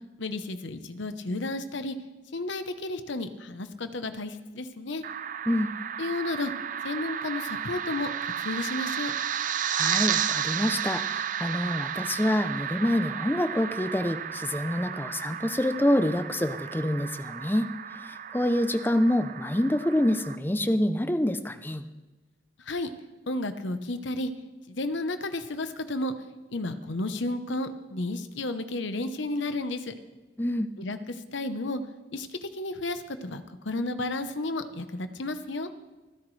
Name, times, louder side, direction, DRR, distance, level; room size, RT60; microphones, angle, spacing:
voice 1, 0.2-2.0 2.3-5.0 6.0-6.5 6.8-9.1 22.6-22.9 23.3-24.3 24.7-26.1 26.5-29.9 30.8-31.8 32.1-35.7, left 2 dB, 65° left, 10 dB, 0.9 m, -32 dB
sound 1, 5.0-20.4, right 9 dB, 40° right, 0.4 m, -33 dB
voice 2, 9.7-17.7 18.0-21.8 30.4-30.7, left 1 dB, 10° left, 10 dB, 0.5 m, -26 dB
28.5 x 10.0 x 3.3 m, 1.2 s
head